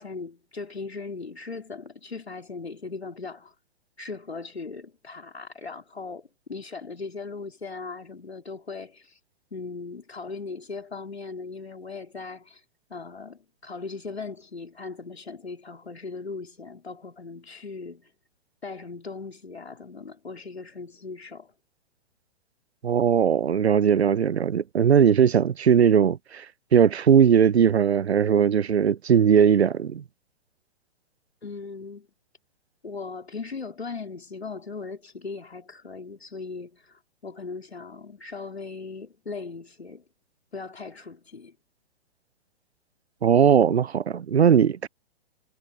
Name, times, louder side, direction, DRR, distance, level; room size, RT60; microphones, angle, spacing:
voice 1, 0.0-3.5 4.0-9.2 9.5-12.6 12.9-18.1 18.6-21.5 31.4-32.1 32.8-40.0 40.5-41.5, left 4 dB, 90° left, 3.3 m, -38 dB
voice 2, 22.8-26.4 26.7-30.0 43.2-44.9, right 8 dB, 90° right, 0.6 m, -19 dB
figure-of-eight pair, 120°, 31 cm